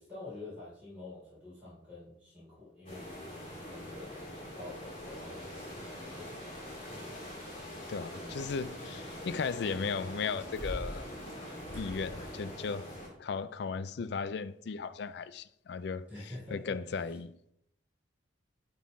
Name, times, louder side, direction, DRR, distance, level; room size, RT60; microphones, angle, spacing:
voice 1, 0.0-3.1 3.6-4.1 4.5-6.8 16.1-17.2, left 2 dB, 5° right, 3.3 m, -47 dB
sound 1, 2.9-13.1, left 1 dB, 30° left, 2.4 m, -44 dB
sound 2, 4.1-12.3, equal, 10° left, 3.1 m, -49 dB
voice 2, 7.9-11.1 11.7-12.9 13.2-17.4, left 5 dB, 60° left, 0.4 m, -36 dB
11.0 x 4.0 x 3.7 m
head